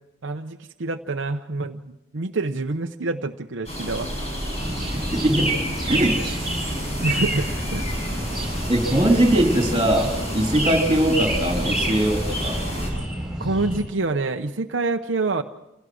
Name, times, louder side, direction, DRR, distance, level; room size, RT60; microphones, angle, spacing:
voice 1, 0.2-4.1 5.9-6.0 7.0-8.3 13.4-15.4, right 3 dB, 65° right, 5 dB, 0.8 m, -27 dB
sound 1, 3.7-12.9, equal, 35° left, 7.7 m, -30 dB
sound 2, 4.5-13.8, right 1 dB, 5° right, 7.5 m, -29 dB
voice 2, 4.9-5.6 5.9-6.3 8.7-12.6, right 1 dB, 25° right, 3 dB, 3.0 m, -21 dB
28.0 x 17.5 x 6.2 m, 0.93 s
head